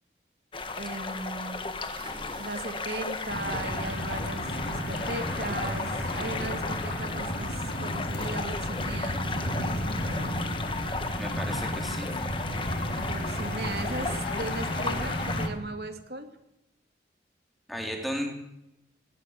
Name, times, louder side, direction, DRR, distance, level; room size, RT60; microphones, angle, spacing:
sound 1, 0.5-15.5, left 3 dB, 30° left, 1.5 m, -35 dB
voice 1, 0.8-1.7 2.4-10.3 13.0-16.3, right 2 dB, 60° right, 7 dB, 2.3 m, -38 dB
sound 2, 1.9-3.9 4.3-4.8 6.2-6.3 6.7-6.8, right 2 dB, 25° right, 4.5 m, -49 dB
sound 3, 3.3-15.5, equal, 75° left, 5.1 m, -33 dB
voice 2, 11.2-12.1 17.7-18.3, equal, ahead, 1 dB, 3.9 m, -34 dB
18.5 x 16.0 x 9.2 m, 0.85 s
head